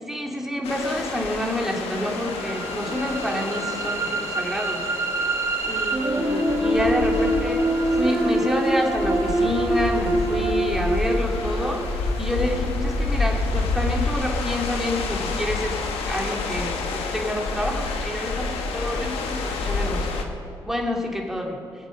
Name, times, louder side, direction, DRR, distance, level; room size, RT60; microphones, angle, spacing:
voice 1, 0.1-4.9 5.7-7.6 7.9-11.8 12.2-15.8 16.1-20.3 20.6-21.6, left 1 dB, 5° right, -1 dB, 3.1 m, -28 dB
sound 1, 0.6-20.2, left 3 dB, 80° left, 1.6 m, -29 dB
sound 2, 2.1-14.1, right 1 dB, 30° right, 3.8 m, -26 dB
21.5 x 8.2 x 5.3 m, 2.4 s
supercardioid pair, 60°, 10 cm